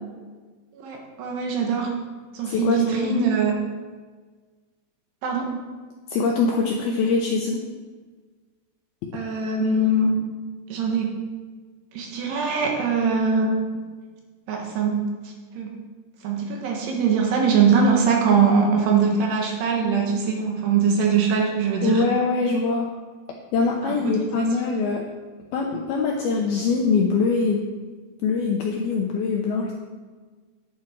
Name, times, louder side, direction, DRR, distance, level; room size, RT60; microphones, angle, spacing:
voice 1, 0.8-1.9 2.3-3.5 5.2-5.6 9.1-10.1 10.7-11.1 11.9-13.5 14.5-15.1 15.6-15.8 16.2-22.1 23.8-24.5, right 5 dB, 70° right, 1 dB, 3.2 m, -22 dB
voice 2, 2.4-3.3 6.1-7.6 21.8-22.9 23.5-25.0 25.5-27.7 28.2-29.7, left 4 dB, 85° left, 0 dB, 2.2 m, -23 dB
10.5 x 10.0 x 4.5 m, 1.4 s
omnidirectional pair, 5.4 m